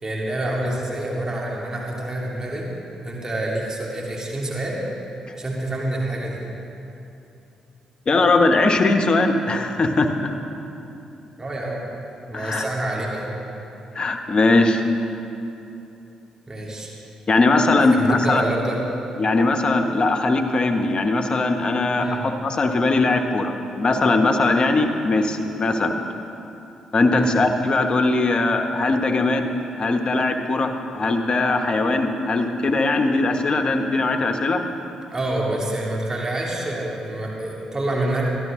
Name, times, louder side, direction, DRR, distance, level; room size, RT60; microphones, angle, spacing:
voice 1, 0.0-2.7 3.0-4.8 5.3-6.4 11.4-11.8 12.3-13.3 16.5-16.9 17.8-18.8 22.0-22.2 27.1-27.3 35.1-38.2, right 1 dB, 25° right, -3 dB, 2.5 m, -27 dB
voice 2, 8.1-10.3 12.3-12.6 13.9-14.9 17.3-18.4 19.2-25.9 26.9-29.5 29.8-34.6, left 2 dB, 45° left, 5 dB, 1.0 m, -20 dB
13.0 x 12.0 x 3.7 m, 2.9 s
hypercardioid pair, 45°, 2 cm